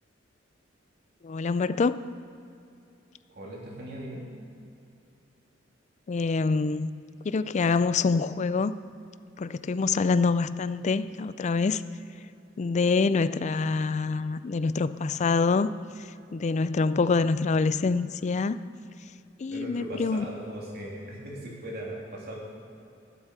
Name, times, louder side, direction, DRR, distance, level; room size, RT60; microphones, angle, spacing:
voice 1, 1.2-1.9 6.1-6.9 7.2-8.8 9.4-11.8 12.6-15.7 16.0-18.6 19.4-20.2, left 4 dB, 35° left, 14 dB, 0.4 m, -26 dB
voice 2, 3.3-4.3 19.5-22.4, right 1 dB, 55° right, -3 dB, 3.0 m, -39 dB
13.5 x 8.2 x 6.7 m, 2.6 s
head